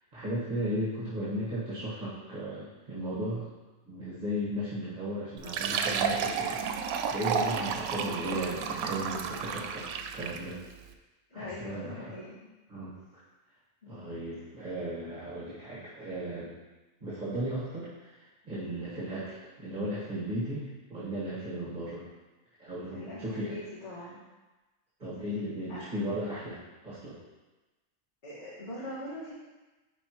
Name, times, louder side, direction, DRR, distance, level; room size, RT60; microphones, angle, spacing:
voice 1, 0.1-3.5 3.8-6.6 7.1-10.6 11.3-12.2 12.7-12.9 13.9-16.6 17.0-22.1 22.6-23.6 25.0-27.2, right 1 dB, 35° right, -9 dB, 1.7 m, -36 dB
Fill (with liquid), 5.4-10.5, right 6 dB, 90° right, 1.0 m, -32 dB
voice 2, 11.3-12.3 13.8-14.1 22.8-24.2 25.7-25.8 28.2-29.3, left 1 dB, 50° left, -11 dB, 2.2 m, -42 dB
10.0 x 4.3 x 3.1 m, 1.2 s
omnidirectional pair, 1.4 m